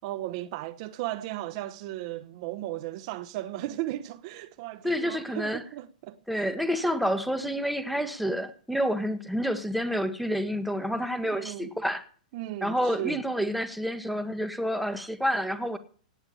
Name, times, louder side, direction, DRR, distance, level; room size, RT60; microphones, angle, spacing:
voice 1, 0.0-6.5 11.3-11.7 12.3-13.2, right 15 dB, 50° right, 0.9 m, -36 dB
voice 2, 4.8-5.6 6.3-12.0 12.6-15.8, equal, ahead, 1.4 m, -29 dB
17.5 x 6.9 x 8.5 m
hypercardioid pair, 140°, 4 cm